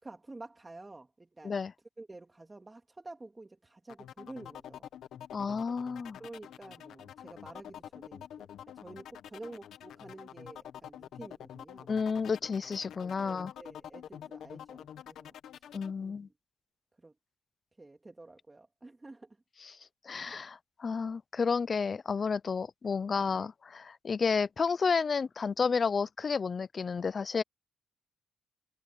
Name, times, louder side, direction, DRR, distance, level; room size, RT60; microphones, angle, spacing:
voice 1, 0.0-1.6 2.0-4.9 6.2-8.5 8.7-11.9 13.2-15.4 16.0-16.1 17.0-17.1 17.8-19.4 20.3-20.4 23.2-23.5, right 2 dB, 20° right, 2.9 m, -49 dB
sound 1, 3.9-15.9, left 10 dB, 70° left, 1.3 m, -47 dB
voice 2, 5.3-6.2 11.9-13.5 15.7-16.3 19.6-19.7 20.1-27.4, left 5 dB, 40° left, 0.6 m, -31 dB
cardioid pair, 90°, 0 cm